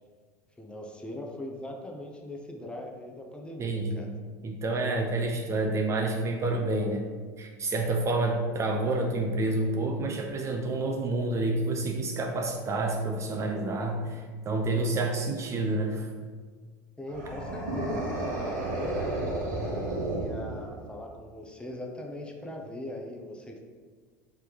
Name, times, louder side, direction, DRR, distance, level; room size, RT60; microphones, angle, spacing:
voice 1, 0.6-4.1 14.7-14.9 17.0-19.3 20.1-23.7, left 1 dB, 10° left, 1 dB, 0.7 m, -40 dB
voice 2, 3.6-4.1 4.4-7.1 7.4-16.1, right 2 dB, 30° right, 2 dB, 0.5 m, -29 dB
sound 1, 17.1-20.9, right 2 dB, 85° right, 1.4 m, -32 dB
3.4 x 3.4 x 4.6 m, 1.5 s
hypercardioid pair, 100°, 10 cm